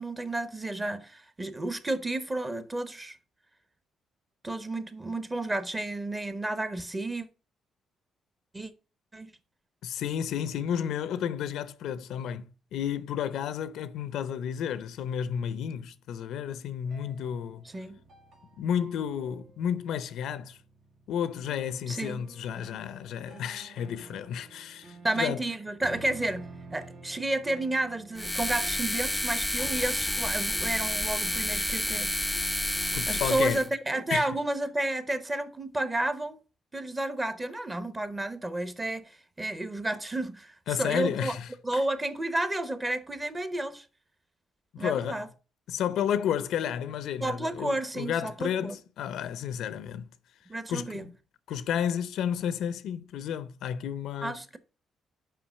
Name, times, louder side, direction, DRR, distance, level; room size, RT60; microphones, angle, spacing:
voice 1, 0.0-3.2 4.4-7.3 8.5-8.7 9.1-9.3 17.6-18.0 21.9-22.3 25.0-32.3 33.1-36.4 36.7-41.4 41.6-43.9 44.8-45.3 47.2-48.8 50.5-51.0 54.2-54.6, right 2 dB, 20° right, 1.0 m, -31 dB
voice 2, 9.8-17.7 18.6-20.6 21.1-25.4 32.9-33.6 34.1-34.3 40.7-41.5 44.7-45.2 45.7-50.1 50.7-51.1 51.5-54.4, left 9 dB, 80° left, 0.6 m, -32 dB
sound 1, 16.8-33.1, right 3 dB, 60° right, 1.4 m, -49 dB
sound 2, 28.2-33.7, left 1 dB, 5° left, 0.5 m, -30 dB
5.8 x 5.0 x 6.4 m
cardioid pair, 90°, 0 cm